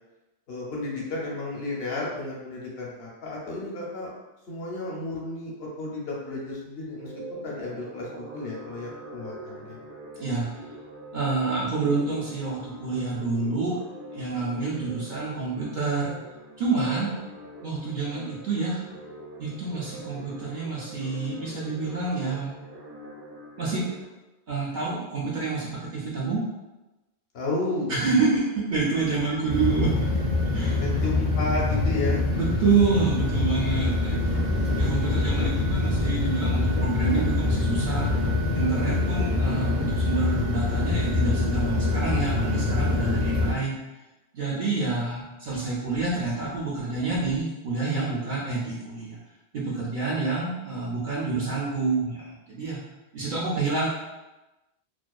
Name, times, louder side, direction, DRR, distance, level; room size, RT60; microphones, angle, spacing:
voice 1, 0.5-4.1 4.5-9.8 27.3-27.9 30.8-32.2, left 2 dB, 65° left, -4 dB, 0.8 m, -32 dB
sound 1, 6.9-24.0, right 1 dB, 90° right, 1.0 m, -44 dB
voice 2, 10.2-10.6 11.1-13.7 14.1-16.2 16.6-17.1 17.6-18.9 19.4-22.6 23.6-23.8 24.5-26.4 27.9-28.4 28.7-29.9 30.5-30.8 32.3-34.4 34.8-38.1 38.5-43.7 44.3-49.2 49.5-52.8 53.1-53.9, right 4 dB, 60° right, -6 dB, 0.6 m, -28 dB
sound 2, 29.5-43.5, left 2 dB, 20° left, 0.3 m, -25 dB
2.5 x 2.2 x 2.3 m, 1.0 s
omnidirectional pair, 1.1 m